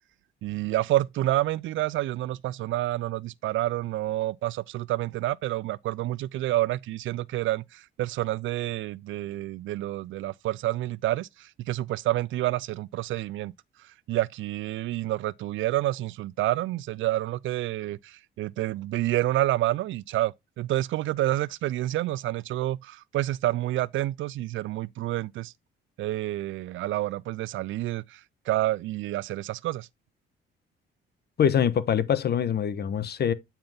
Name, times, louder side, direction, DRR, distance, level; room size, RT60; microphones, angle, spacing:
voice 1, 0.4-13.5 14.1-25.5 26.0-28.2 28.5-29.9, right 15 dB, 75° right, 0.5 m, -28 dB
voice 2, 31.4-33.3, left 8 dB, 55° left, 1.1 m, -24 dB
8.8 x 5.8 x 3.5 m
cardioid pair, 90°, 20 cm